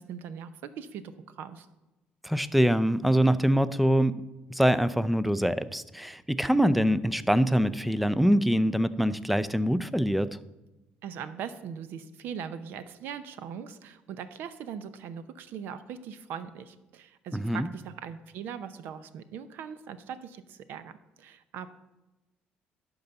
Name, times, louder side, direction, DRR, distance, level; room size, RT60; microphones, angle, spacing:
voice 1, 0.0-1.7 11.0-21.7, right 7 dB, 70° right, 12 dB, 0.7 m, -40 dB
voice 2, 2.2-4.2 4.5-10.4 17.3-17.7, equal, ahead, 15 dB, 0.4 m, -24 dB
11.5 x 3.9 x 6.8 m, 1.0 s
cardioid pair, 105°, 4 cm